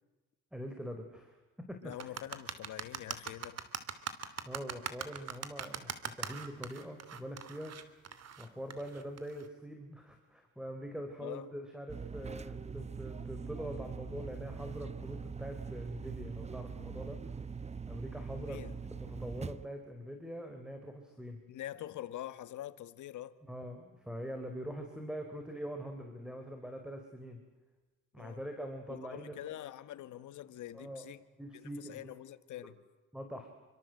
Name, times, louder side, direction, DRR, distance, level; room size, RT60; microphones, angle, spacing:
voice 1, 0.5-2.1 4.4-7.8 8.4-17.2 17.9-18.6 19.0-21.4 23.5-27.4 28.1-29.4 30.7-31.1 31.4-32.1 33.1-33.5, equal, 5° right, 4.4 m, -43 dB
voice 2, 1.8-3.6 8.7-8.8 11.2-11.5 18.4-18.8 21.5-23.4 28.2-28.4 28.9-31.2 31.5-32.8, left 13 dB, 80° left, 1.7 m, -45 dB
sound 1, 1.9-9.5, right 7 dB, 55° right, 2.9 m, -41 dB
sound 2, 11.9-19.7, right 5 dB, 20° right, 0.9 m, -42 dB
28.5 x 25.5 x 7.9 m
cardioid pair, 90°, 30 cm